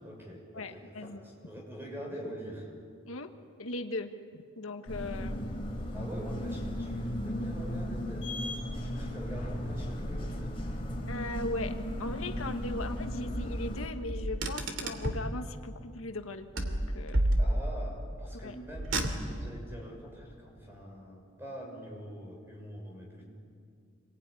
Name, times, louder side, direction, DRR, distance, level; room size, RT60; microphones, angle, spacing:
voice 1, 0.0-2.7 5.9-8.4 8.7-10.5 17.4-23.3, equal, 10° right, -1 dB, 6.4 m, -45 dB
voice 2, 0.5-1.2 3.1-3.3 3.6-4.1 4.6-5.5 11.1-17.2 18.3-18.5, left 2 dB, 85° left, 6 dB, 1.5 m, -38 dB
sound 1, 4.9-13.9, equal, 25° left, 4.1 m, -35 dB
Car, 14.1-15.3 16.6-17.9 18.7-19.6, right 1 dB, 65° right, 2.7 m, -30 dB
27.0 x 21.5 x 9.8 m, 2.2 s
head